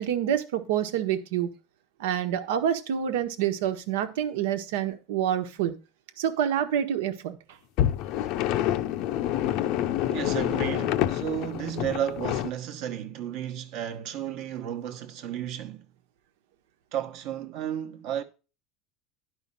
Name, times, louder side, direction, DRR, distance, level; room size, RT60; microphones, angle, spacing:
voice 1, 0.0-1.5 2.0-5.7 6.2-7.4, right 9 dB, 90° right, 1.4 m, -27 dB
sound 1, 7.8-12.5, left 12 dB, 45° left, 0.6 m, -27 dB
voice 2, 10.0-15.9 16.9-18.2, right 10 dB, 45° right, 1.0 m, -33 dB
11.0 x 5.7 x 5.5 m
cardioid pair, 175°, 0 cm